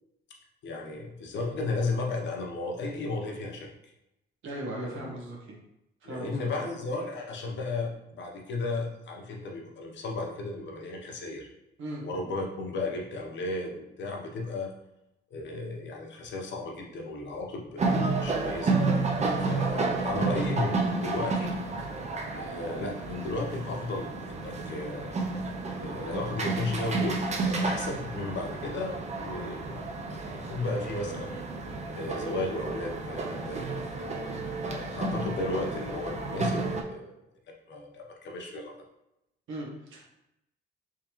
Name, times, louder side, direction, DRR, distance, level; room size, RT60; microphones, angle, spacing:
voice 1, 0.6-3.7 4.8-5.1 6.0-11.5 12.0-14.7 15.3-18.8 19.5-21.5 22.4-25.2 25.8-29.8 30.3-31.4 31.9-33.9 34.6-36.6 36.9-37.1 37.7-38.7, left 2 dB, 65° left, 0 dB, 0.9 m, -34 dB
voice 2, 4.4-5.6 6.0-6.5 11.8-12.0 19.2-19.4 39.5-40.0, right 1 dB, 75° right, -2 dB, 1.2 m, -37 dB
sound 1, 17.8-36.8, right 3 dB, 35° right, 0.6 m, -31 dB
3.7 x 3.0 x 3.0 m, 0.87 s
cardioid pair, 90°, 20 cm